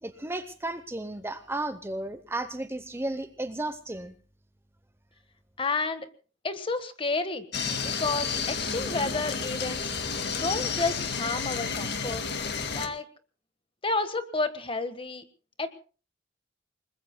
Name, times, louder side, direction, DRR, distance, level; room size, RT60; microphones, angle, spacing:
voice 1, 0.0-4.1, right 2 dB, 15° right, 10 dB, 0.7 m, -34 dB
voice 2, 5.6-6.1 6.4-7.4 7.8-9.9 10.4-12.2 12.7-13.1 13.8-15.2 15.6-15.7, left 3 dB, 30° left, 10 dB, 1.4 m, -30 dB
sound 1, 7.5-12.9, left 5 dB, 60° left, 1.9 m, -31 dB
29.5 x 20.5 x 2.2 m, 0.37 s
head